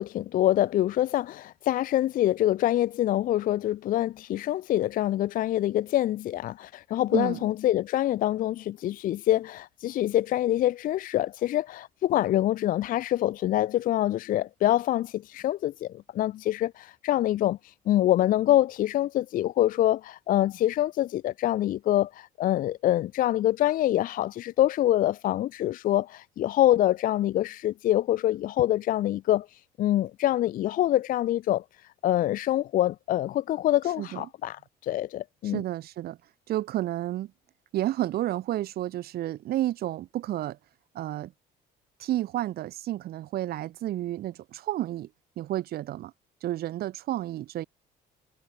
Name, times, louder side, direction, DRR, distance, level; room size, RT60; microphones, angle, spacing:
voice 1, 0.0-29.5 29.8-31.6 32.0-35.6, left 13 dB, 55° left, 0.5 m, -25 dB
voice 2, 35.4-36.2 36.5-37.3 37.7-40.6 40.9-41.3 42.0-45.1 45.4-46.1 46.4-47.7, right 14 dB, 65° right, 1.4 m, -31 dB
cardioid pair, 110°, 17 cm